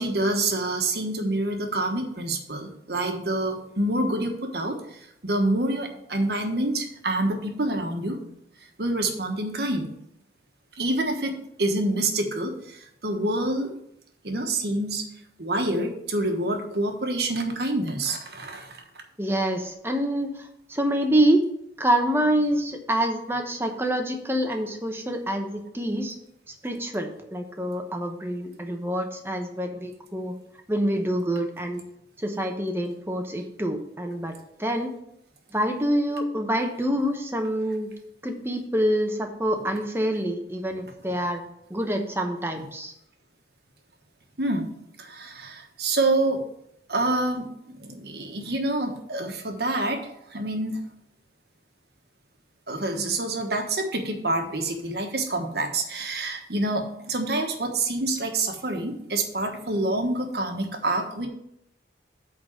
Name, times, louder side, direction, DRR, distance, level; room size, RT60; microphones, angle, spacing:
voice 1, 0.0-8.2 8.8-9.9 10.8-13.7 14.2-15.0 15.4-18.8 44.4-44.7 45.0-46.4 46.9-50.0 50.3-50.8 52.7-61.3, right 2 dB, 60° right, 4 dB, 1.3 m, -27 dB
voice 2, 19.2-21.4 21.8-26.1 26.6-30.3 30.7-31.8 32.2-34.3 34.6-34.9 35.5-37.9 38.2-41.4 41.7-42.9, right 1 dB, 15° right, 4 dB, 0.9 m, -26 dB
8.6 x 4.0 x 7.1 m, 0.77 s
head